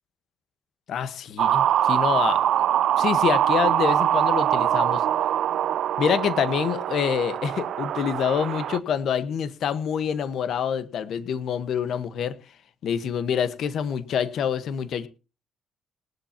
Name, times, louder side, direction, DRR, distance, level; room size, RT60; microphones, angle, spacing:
voice 1, 0.9-2.4 3.0-5.0 6.0-12.4 12.8-15.1, left 8 dB, 70° left, 1.3 m, -26 dB
sound 1, 1.4-8.8, right 11 dB, 75° right, 0.5 m, -23 dB
19.0 x 11.5 x 2.9 m
cardioid pair, 90°, 0 cm